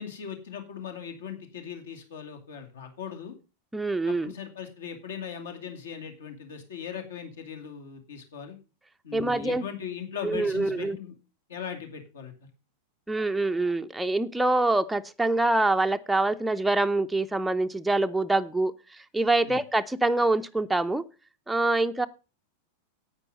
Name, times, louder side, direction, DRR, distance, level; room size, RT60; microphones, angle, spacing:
voice 1, 0.0-3.3 4.1-8.6 9.0-11.1 11.5-12.3 19.4-19.6, left 7 dB, 60° left, 5 dB, 2.5 m, -39 dB
voice 2, 3.7-4.3 9.1-9.6 10.2-11.0 13.1-18.7 19.1-21.0 21.5-22.1, right 2 dB, 5° right, 6 dB, 0.6 m, -25 dB
9.8 x 9.0 x 5.3 m, 0.31 s
figure-of-eight pair, 90°, 0 cm